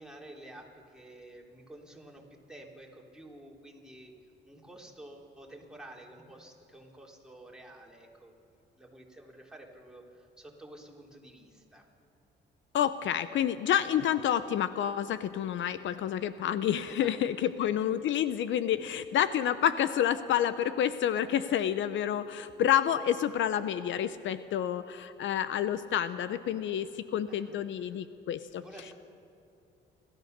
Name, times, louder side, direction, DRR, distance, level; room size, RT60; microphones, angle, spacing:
voice 1, 0.0-4.1 4.4-11.8 16.8-17.7 27.3-28.0 28.6-28.9, right 1 dB, 5° right, -1 dB, 3.4 m, -51 dB
voice 2, 12.7-28.6, left 10 dB, 75° left, 13 dB, 0.7 m, -29 dB
30.0 x 13.0 x 6.7 m, 2.8 s
cardioid pair, 90°, 20 cm